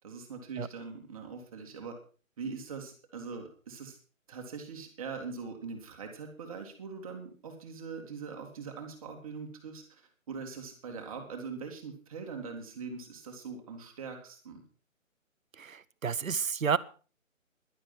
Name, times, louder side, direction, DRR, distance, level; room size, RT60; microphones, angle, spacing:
voice 1, 0.0-2.0 2.4-4.0 4.3-14.6, right 5 dB, 25° right, 3 dB, 2.5 m, -42 dB
voice 2, 15.6-16.8, right 6 dB, 75° right, 17 dB, 1.0 m, -30 dB
11.5 x 11.0 x 5.8 m, 0.38 s
hypercardioid pair, 165°, 41 cm